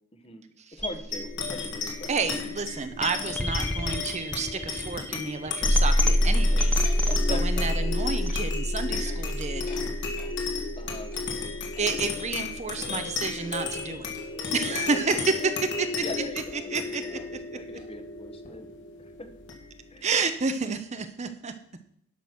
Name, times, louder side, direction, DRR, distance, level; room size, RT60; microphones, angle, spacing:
voice 1, 0.1-0.4 0.7-2.1 7.1-7.9 10.8-11.1 11.8-12.3 14.7-14.8 16.0-18.7 19.2-19.3 19.9-20.1, left 1 dB, 25° left, 7 dB, 1.2 m, -41 dB
sound 1, 0.8-12.8, left 1 dB, 5° left, 0.9 m, -27 dB
sound 2, 1.1-20.0, left 4 dB, 60° left, 2.2 m, -34 dB
voice 2, 2.1-9.7 11.8-14.1 14.5-15.5 15.8-15.9 16.5-17.6 20.0-21.5, right 4 dB, 30° right, 9 dB, 0.8 m, -30 dB
sound 3, 6.6-7.7 8.1-8.5 8.8-10.4 11.1-12.1 12.7-14.9 15.8-16.1 16.5-16.6 17.1-17.4 17.7-17.9 18.4-18.8, left 3 dB, 45° left, 2.8 m, -50 dB
11.5 x 6.1 x 6.1 m, 0.66 s
head